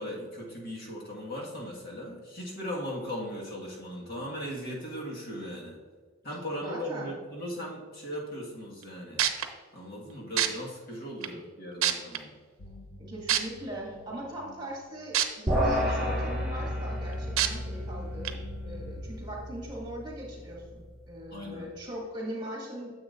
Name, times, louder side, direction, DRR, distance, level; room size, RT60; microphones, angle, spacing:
voice 1, 0.0-5.8 6.2-9.2 9.7-12.3 21.3-21.7, equal, 50° left, -3 dB, 1.6 m, -38 dB
voice 2, 6.6-7.1 13.0-22.9, right 1 dB, 20° right, -3 dB, 2.0 m, -40 dB
sound 1, 8.8-8.9 9.2-9.5 10.4-10.5 11.2-11.3 11.8-12.2 13.3-13.4 15.1-15.2 15.8-15.9 17.4-17.5 18.2-18.3, right 11 dB, 85° right, 0.7 m, -24 dB
sound 2, 12.6-15.3 15.6-19.0, left 2 dB, 85° left, 0.9 m, -50 dB
sound 3, 15.5-21.0, equal, ahead, 1.6 m, -32 dB
9.9 x 7.3 x 2.5 m, 1.5 s
head